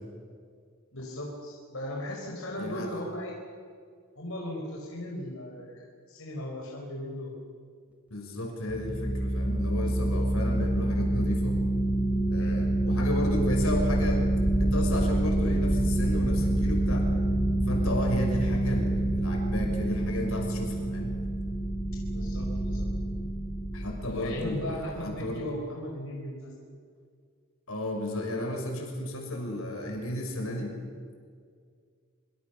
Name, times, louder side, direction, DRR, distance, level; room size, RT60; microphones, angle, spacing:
voice 1, 0.9-3.4 4.2-7.3 12.4-12.7 22.1-22.9 24.1-26.5, left 1 dB, 70° left, -1 dB, 4.8 m, -37 dB
voice 2, 2.6-2.9 8.1-11.6 12.3-14.2 14.6-17.1 17.7-21.2 23.7-25.4 27.7-30.8, left 1 dB, 85° left, 2 dB, 6.1 m, -33 dB
sound 1, 8.7-24.9, right 1 dB, 5° right, 3.3 m, -27 dB
25.5 x 25.5 x 7.0 m, 2.1 s
head